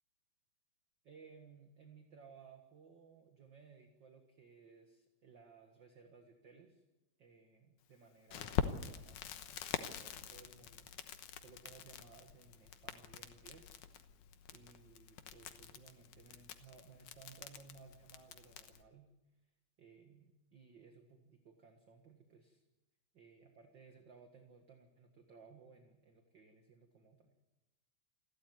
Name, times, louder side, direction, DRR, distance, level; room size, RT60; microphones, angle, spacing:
voice 1, 1.0-6.8 7.2-10.9 11.4-13.7 14.5-19.1 19.8-22.6 23.1-27.4, right 5 dB, 40° right, 5 dB, 2.0 m, -60 dB
Crackle, 8.3-18.8, left 9 dB, 80° left, 2.6 m, -45 dB
28.5 x 13.0 x 9.4 m, 1.0 s
omnidirectional pair, 3.5 m